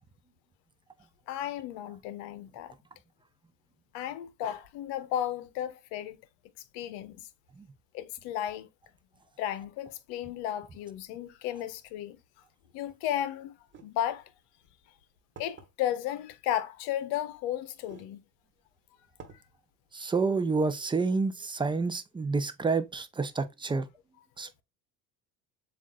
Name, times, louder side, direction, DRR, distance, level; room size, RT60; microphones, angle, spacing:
voice 1, 1.3-2.7 3.9-6.2 6.7-7.3 7.9-8.7 9.4-12.2 12.7-13.5 13.8-14.3 15.4-18.2, left 11 dB, 75° left, 0.8 m, -34 dB
sound 1, 13.7-13.9 14.7-14.8 15.4-15.7 16.9-17.0 17.7-18.1 18.6-18.7 19.2-19.4, right 4 dB, 30° right, 1.2 m, -49 dB
voice 2, 19.9-23.8 24.4-24.6, right 4 dB, 15° right, 0.5 m, -29 dB
7.3 x 2.5 x 2.3 m
supercardioid pair, 100°, 36 cm